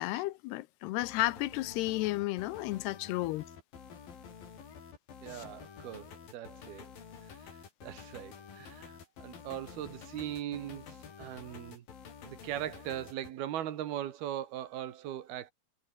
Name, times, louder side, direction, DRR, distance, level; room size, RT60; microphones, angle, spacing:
voice 1, 0.0-3.4 5.3-5.4, left 18 dB, 85° left, 2.8 m, -33 dB
sound 1, 0.9-13.3, left 6 dB, 60° left, 5.4 m, -50 dB
voice 2, 5.2-6.9 7.8-11.9 12.2-15.5, right 11 dB, 70° right, 3.5 m, -40 dB
omnidirectional pair, 4.6 m